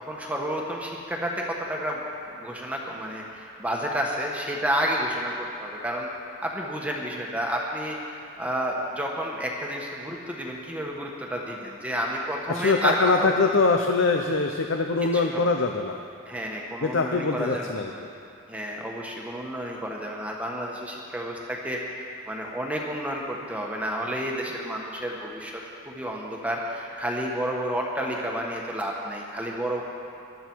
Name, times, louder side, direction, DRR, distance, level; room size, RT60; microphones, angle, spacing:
voice 1, 0.0-2.0 2.4-6.1 6.4-13.3 15.1-15.4 16.3-17.6 18.5-21.8 22.3-29.8, equal, 5° right, -2 dB, 1.3 m, -30 dB
voice 2, 12.5-16.0 16.8-18.1, left 3 dB, 65° left, 4 dB, 0.7 m, -23 dB
19.5 x 12.5 x 4.6 m, 2.6 s
head